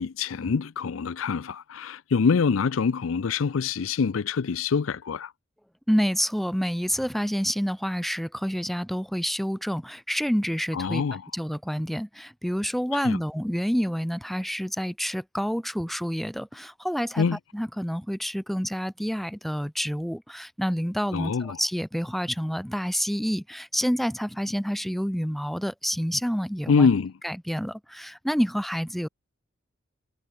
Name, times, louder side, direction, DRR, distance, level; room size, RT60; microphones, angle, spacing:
voice 1, 0.0-5.3 10.7-11.2 13.0-13.2 17.2-17.4 21.1-21.6 26.7-27.1, left 5 dB, 85° left, 0.5 m, -25 dB
voice 2, 5.9-11.0 11.3-17.3 17.5-26.9 27.2-29.1, equal, ahead, 1.7 m, -28 dB
head